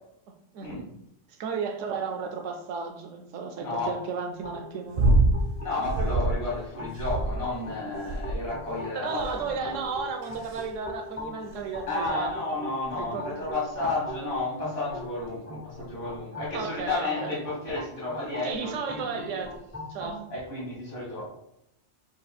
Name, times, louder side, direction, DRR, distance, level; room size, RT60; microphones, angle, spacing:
voice 1, 0.5-0.9 1.3-5.1 8.9-12.3 13.0-13.3 16.5-17.3 18.4-19.6 19.9-20.2, right 5 dB, 75° right, 5 dB, 1.0 m, -34 dB
voice 2, 3.6-3.9 5.6-9.8 11.9-19.4 20.3-21.2, left 2 dB, 70° left, -5 dB, 1.8 m, -32 dB
sound 1, 4.4-20.2, left 2 dB, 15° left, 0.4 m, -42 dB
sound 2, 4.9-5.4 5.8-6.4 7.0-7.6 8.1-8.5 9.2-9.5 10.2-10.6 11.5-11.6, right 2 dB, 60° right, 0.7 m, -24 dB
4.2 x 2.5 x 4.2 m, 0.81 s
omnidirectional pair, 1.3 m